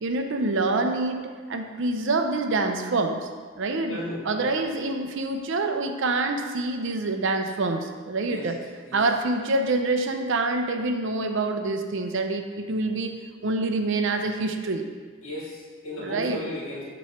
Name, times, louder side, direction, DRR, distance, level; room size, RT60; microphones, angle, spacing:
voice 1, 0.0-3.3 3.6-4.0 4.2-8.6 8.9-13.2 13.4-14.8 16.0-16.4, right 2 dB, 60° right, 5 dB, 0.5 m, -26 dB
voice 2, 3.9-4.5 8.2-8.5 8.8-9.0 15.2-16.8, left 1 dB, 70° left, -5 dB, 1.9 m, -35 dB
7.2 x 3.1 x 5.6 m, 1.6 s
head